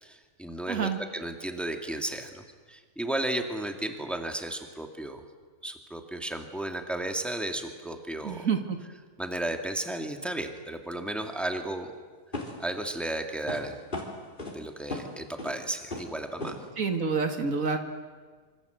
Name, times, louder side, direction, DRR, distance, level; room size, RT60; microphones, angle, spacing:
voice 1, 0.0-5.2 5.6-8.5 9.2-11.9 12.6-13.7 14.5-16.6, right 1 dB, ahead, 5 dB, 2.1 m, -34 dB
voice 2, 0.7-1.0 8.2-8.8 16.8-17.8, right 5 dB, 70° right, 6 dB, 2.4 m, -28 dB
sound 1, 11.2-11.3 12.3-12.7 13.5-13.6 13.9-14.6 14.9-15.1 15.4-15.6 15.9-16.1 16.4-16.6, left 2 dB, 35° left, 4.1 m, -36 dB
26.0 x 25.5 x 8.1 m, 1.5 s
omnidirectional pair, 1.5 m